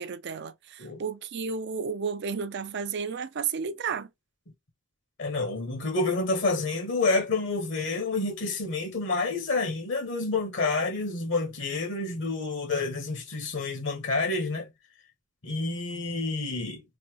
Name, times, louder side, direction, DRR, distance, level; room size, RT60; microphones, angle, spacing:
voice 1, 0.0-4.1, right 6 dB, 60° right, 0.5 m, -32 dB
voice 2, 5.2-14.7 15.4-16.8, left 3 dB, 65° left, 1.2 m, -29 dB
4.1 x 2.6 x 3.0 m
head